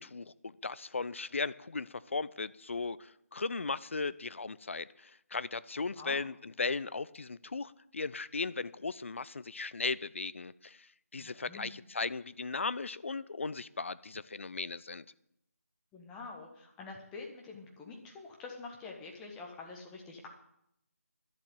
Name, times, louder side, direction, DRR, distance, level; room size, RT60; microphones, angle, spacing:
voice 1, 0.0-15.0, left 4 dB, 50° left, 17 dB, 0.5 m, -37 dB
voice 2, 11.2-11.7 15.9-20.3, left 4 dB, 10° left, 0 dB, 1.2 m, -46 dB
11.0 x 7.4 x 9.5 m, 0.77 s
figure-of-eight pair, 160°, 8 cm